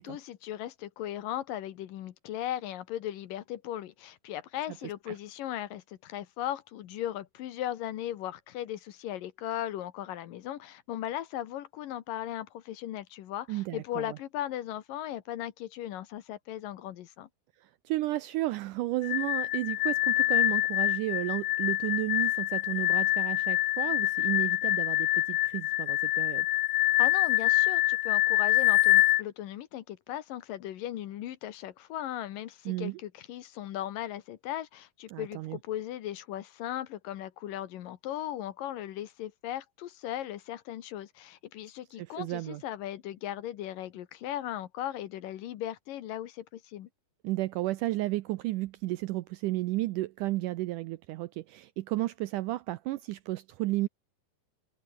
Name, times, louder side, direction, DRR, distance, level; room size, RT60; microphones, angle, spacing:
voice 1, 0.0-17.3 27.0-46.9, left 12 dB, 70° left, 2.8 m, -37 dB
voice 2, 13.5-14.2 17.9-26.5 32.7-33.0 35.1-35.6 42.0-42.6 47.2-53.9, right 17 dB, 80° right, 1.9 m, -33 dB
sound 1, 19.0-29.2, left 18 dB, 85° left, 1.6 m, -26 dB
omnidirectional pair, 4.2 m